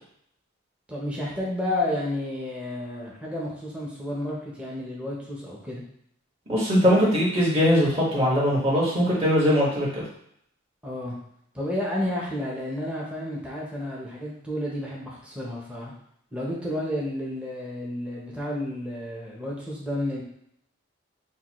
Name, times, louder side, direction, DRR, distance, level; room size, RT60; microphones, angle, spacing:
voice 1, 0.9-5.8 10.8-11.2 11.5-15.9 16.3-20.2, left 1 dB, 5° right, -5 dB, 0.8 m, -31 dB
voice 2, 6.5-10.0, equal, 30° right, -6 dB, 1.6 m, -21 dB
6.5 x 2.3 x 3.1 m, 0.71 s
head